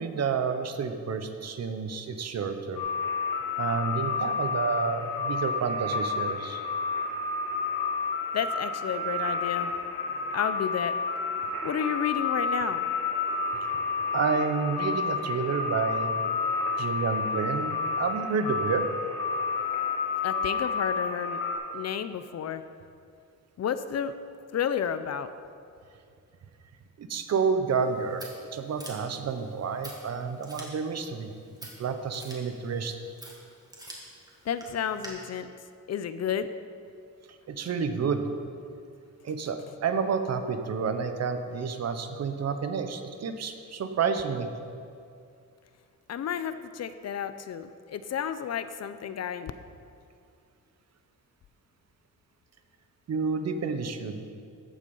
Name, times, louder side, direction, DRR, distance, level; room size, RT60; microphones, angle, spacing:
voice 1, 0.0-2.8 3.6-6.6 13.6-13.7 14.1-16.1 16.8-18.9 27.0-31.3 31.8-33.0 37.3-38.2 39.2-44.5 53.1-54.3, right 5 dB, 50° right, 8 dB, 0.9 m, -30 dB
sound 1, 2.7-21.5, left 4 dB, 75° left, 2.6 m, -30 dB
voice 2, 8.3-9.7 10.3-10.9 11.6-12.8 20.2-21.4 21.7-22.6 23.6-24.1 24.5-25.3 34.5-35.5 35.9-36.5 46.1-49.5, left 8 dB, 50° left, 12 dB, 0.6 m, -31 dB
Scissors, 27.7-35.1, right 1 dB, 10° right, 2.1 m, -48 dB
14.0 x 8.5 x 5.5 m, 2.4 s
wide cardioid pair, 160°, 33 cm